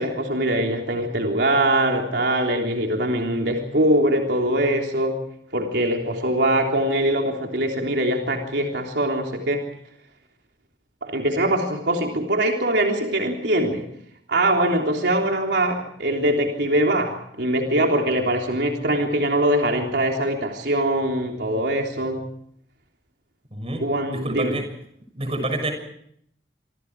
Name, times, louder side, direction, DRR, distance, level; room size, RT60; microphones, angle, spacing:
voice 1, 0.0-5.2 5.5-9.7 11.0-13.9 14.3-22.3 23.8-24.6, right 1 dB, 80° right, 2 dB, 3.5 m, -22 dB
voice 2, 23.5-24.7 25.1-25.7, right 1 dB, 35° right, 6 dB, 6.7 m, -28 dB
26.0 x 26.0 x 4.8 m, 0.69 s
head